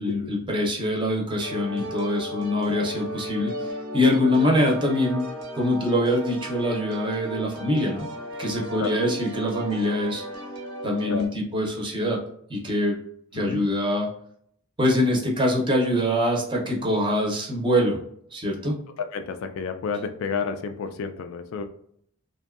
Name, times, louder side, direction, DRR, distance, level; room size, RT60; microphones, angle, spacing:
voice 1, 0.0-5.2 5.5-8.1 8.4-10.2 10.8-12.2 12.5-13.0 13.3-14.1 14.8-18.0 18.3-18.8, left 1 dB, 20° right, -1 dB, 0.6 m, -24 dB
sound 1, 1.4-11.3, equal, 90° right, 0.7 m, -35 dB
voice 2, 13.3-13.6 19.0-21.6, left 5 dB, 60° left, 7 dB, 0.3 m, -31 dB
2.6 x 2.2 x 2.3 m, 0.66 s
head